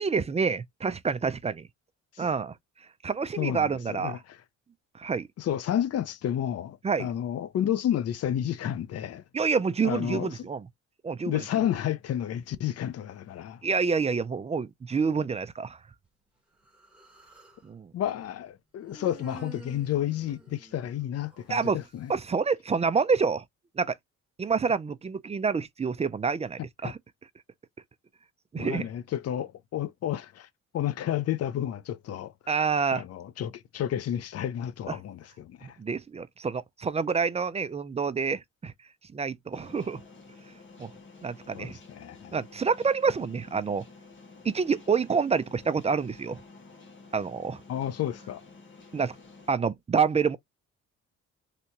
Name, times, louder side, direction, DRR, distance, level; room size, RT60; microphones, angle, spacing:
voice 1, 0.0-1.7 2.2-2.5 3.0-4.2 5.0-5.3 6.8-7.1 9.3-10.7 11.0-11.4 13.6-15.8 17.6-17.9 21.5-21.8 22.1-23.4 23.8-23.9 24.4-27.0 28.5-28.9 32.5-33.0 35.6-38.7 39.1-40.0 40.8-40.9 41.2-41.8 42.3-43.8 44.4-46.4 47.1-47.6 48.9-49.2 49.5-50.4, right 5 dB, 20° right, 0.4 m, -27 dB
voice 2, 3.4-4.4 5.4-9.2 9.8-10.5 11.3-13.6 17.9-22.1 26.8-26.9 28.6-30.5 30.7-32.3 32.9-35.8 41.5-42.4 47.7-48.4, left 11 dB, 55° left, 0.6 m, -31 dB
Human voice, 16.7-17.6 18.8-21.5, right 3 dB, 5° right, 1.6 m, -50 dB
sound 1, 39.5-49.5, left 3 dB, 40° left, 1.5 m, -51 dB
3.4 x 2.8 x 2.8 m
cardioid pair, 90°, 30 cm